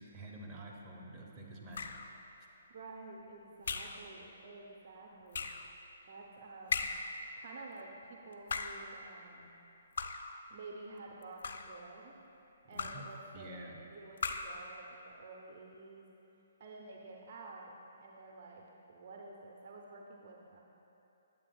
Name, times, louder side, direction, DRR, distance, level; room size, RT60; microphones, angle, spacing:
voice 1, 0.0-2.0 12.7-13.0 13.3-13.8, right 1 dB, 20° right, -3 dB, 0.9 m, -48 dB
sound 1, 1.7-2.2 3.6-4.0 5.3-5.7 6.7-7.2 8.3-8.9 10.0-10.4 11.2-11.8 12.8-13.2 14.2-14.6, left 4 dB, 60° left, 0.4 m, -38 dB
voice 2, 2.7-5.5 6.0-6.9 7.4-9.6 10.5-12.1 12.7-16.0 16.6-17.7 18.0-20.6, right 3 dB, 50° right, 0 dB, 0.6 m, -51 dB
8.8 x 7.7 x 2.3 m, 2.8 s
figure-of-eight pair, 130°, 0 cm